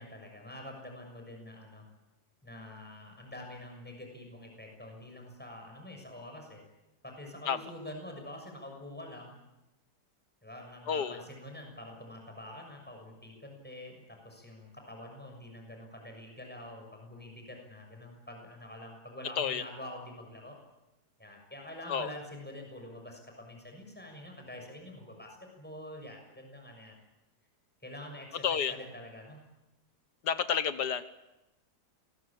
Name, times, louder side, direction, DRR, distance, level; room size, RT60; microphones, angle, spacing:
voice 1, 0.0-1.8 2.4-6.6 7.0-9.3 10.4-20.6 21.2-26.9 27.8-29.4, left 1 dB, 5° left, 2 dB, 6.5 m, -46 dB
voice 2, 10.9-11.2 19.4-19.6 21.9-22.1 28.4-28.7 30.2-31.0, left 7 dB, 80° left, 12 dB, 1.8 m, -30 dB
28.0 x 21.0 x 8.8 m, 0.98 s
omnidirectional pair, 1.8 m